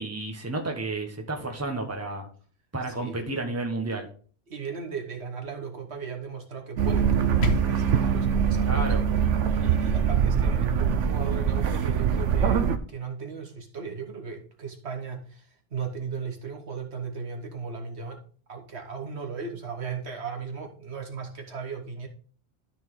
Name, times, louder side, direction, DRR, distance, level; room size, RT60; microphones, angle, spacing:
voice 1, 0.0-2.3 2.7-4.1 8.6-9.0, right 2 dB, 15° right, 2 dB, 1.3 m, -31 dB
voice 2, 2.9-3.3 4.5-9.1 9.6-18.2 18.5-22.1, right 5 dB, 65° right, 3 dB, 1.6 m, -37 dB
sound 1, 6.8-12.8, right 7 dB, 80° right, 1.1 m, -23 dB
sound 2, 7.0-8.0, left 5 dB, 65° left, 1.5 m, -31 dB
12.5 x 4.4 x 3.8 m, 0.42 s
omnidirectional pair, 1.2 m